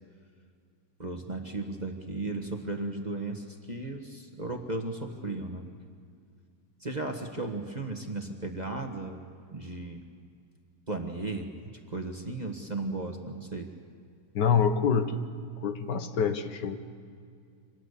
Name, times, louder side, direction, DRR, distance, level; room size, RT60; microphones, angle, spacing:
voice 1, 1.0-5.7 6.8-9.2 9.5-10.1 10.9-11.5 11.9-13.7, right 2 dB, 25° right, 3 dB, 1.5 m, -35 dB
voice 2, 14.4-15.2 15.6-16.8, left 6 dB, 75° left, 9 dB, 1.8 m, -26 dB
25.5 x 19.0 x 8.3 m, 2.2 s
omnidirectional pair, 1.9 m